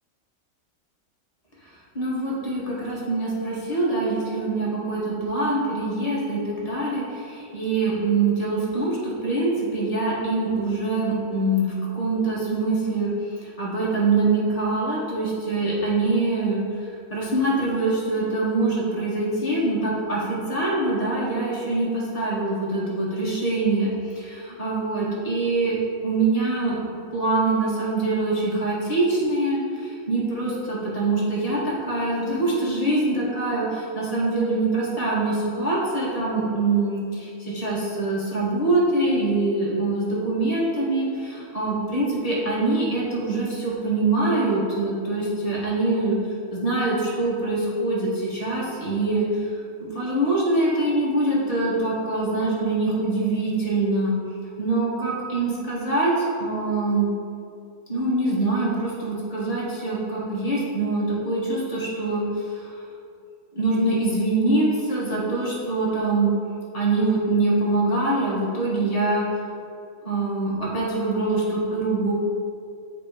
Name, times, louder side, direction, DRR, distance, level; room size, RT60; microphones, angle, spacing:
voice 1, 1.9-25.8 26.0-26.8 27.1-46.2 46.5-49.4 49.8-54.2 54.6-57.1 57.9-62.8 63.5-66.3 66.7-69.3 70.0-72.1, right 2 dB, 30° left, -6 dB, 1.4 m, -24 dB
7.4 x 3.0 x 5.0 m, 2.5 s
omnidirectional pair, 1.4 m